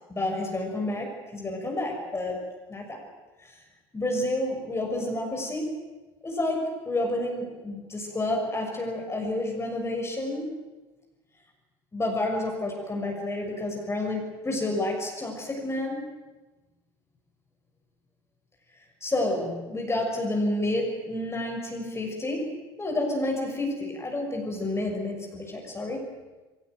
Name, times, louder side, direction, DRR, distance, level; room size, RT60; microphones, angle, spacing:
voice 1, 0.1-2.4 2.7-3.0 3.4-3.5 3.9-5.8 6.2-10.6 11.9-16.0 19.0-26.0, left 1 dB, 20° left, 1 dB, 6.6 m, -30 dB
21.5 x 18.0 x 9.4 m, 1.2 s
hypercardioid pair, 65°, 12 cm